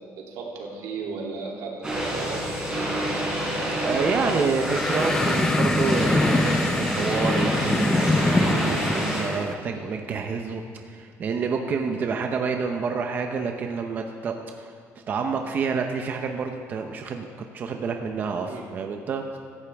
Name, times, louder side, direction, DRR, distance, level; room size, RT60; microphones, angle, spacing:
voice 1, 0.2-2.9 9.7-9.9 18.5-18.7, right 4 dB, 85° right, -2 dB, 2.8 m, -35 dB
sound 1, 1.8-9.2, right 1 dB, 15° right, 3.7 m, -29 dB
sound 2, 1.9-7.7, left 3 dB, 70° left, 2.4 m, -36 dB
voice 2, 3.8-14.7 15.1-17.3 17.5-19.4, right 5 dB, 35° right, 4 dB, 0.7 m, -28 dB
sound 3, 4.5-9.5, left 2 dB, 10° left, 0.6 m, -24 dB
16.5 x 14.5 x 3.5 m, 2.2 s
cardioid pair, 180°, 6 cm